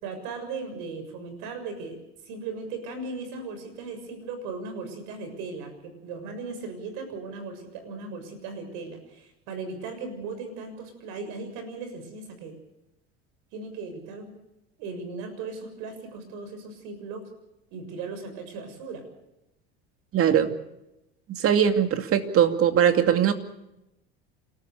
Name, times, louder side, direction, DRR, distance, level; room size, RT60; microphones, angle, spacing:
voice 1, 0.0-2.0 2.3-12.5 13.5-14.3 14.8-17.2 17.7-19.0, right 4 dB, 70° right, 8 dB, 7.0 m, -37 dB
voice 2, 20.1-20.5 21.3-23.3, right 9 dB, 45° right, 8 dB, 2.5 m, -21 dB
28.0 x 14.0 x 8.3 m, 0.89 s
supercardioid pair, 95°, 31 cm